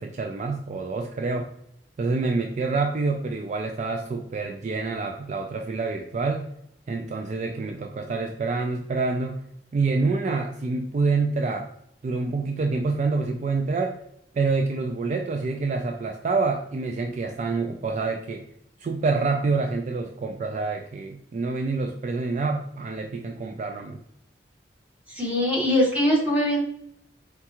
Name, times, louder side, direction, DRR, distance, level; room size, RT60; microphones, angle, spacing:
voice 1, 0.0-1.5 2.0-6.4 6.9-9.4 9.7-11.7 12.0-13.9 14.3-18.4 18.8-24.0, right 3 dB, 45° right, 3 dB, 0.3 m, -27 dB
voice 2, 25.1-26.6, equal, 10° right, -4 dB, 1.2 m, -22 dB
4.4 x 2.3 x 2.8 m, 0.74 s
head